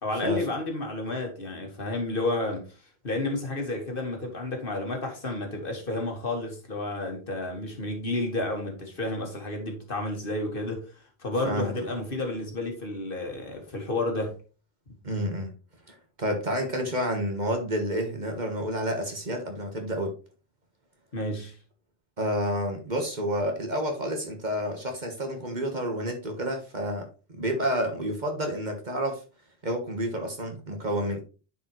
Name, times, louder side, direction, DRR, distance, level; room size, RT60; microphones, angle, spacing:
voice 1, 0.0-2.7 3.0-10.9 11.2-14.3 14.9-15.0 21.1-21.6, left 2 dB, 55° left, 1.9 m, -31 dB
voice 2, 15.0-15.5 16.2-20.2 22.2-27.1 27.4-29.2 29.6-31.2, equal, 45° right, 1.5 m, -29 dB
9.9 x 4.7 x 3.1 m
omnidirectional pair, 1.1 m